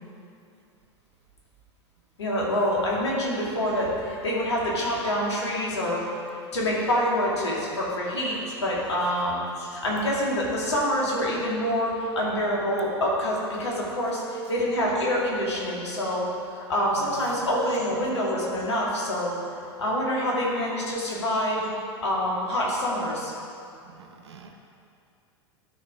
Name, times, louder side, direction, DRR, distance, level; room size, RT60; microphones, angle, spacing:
voice 1, 2.2-6.1 6.5-19.4 19.8-21.7 22.0-23.3, equal, 85° left, -4 dB, 2.3 m, -26 dB
voice 2, 23.9-24.5, right 6 dB, 75° right, 4 dB, 1.0 m, -48 dB
12.0 x 5.1 x 4.9 m, 2.5 s
hypercardioid pair, 85°, 14 cm